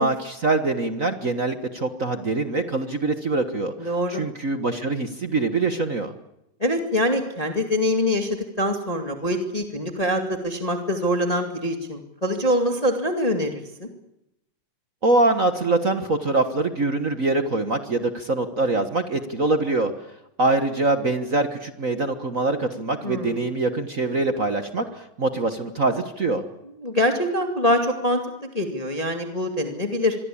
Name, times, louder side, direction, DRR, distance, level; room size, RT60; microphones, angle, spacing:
voice 1, 0.0-3.7 4.1-6.1 15.0-19.9 20.4-26.4, right 2 dB, 40° right, 8 dB, 1.2 m, -24 dB
voice 2, 3.8-4.2 6.6-13.5 13.8-13.9 23.0-23.3 26.8-28.2 28.5-30.2, left 1 dB, 15° left, 5 dB, 2.0 m, -24 dB
25.5 x 22.0 x 8.7 m, 0.86 s
omnidirectional pair, 3.3 m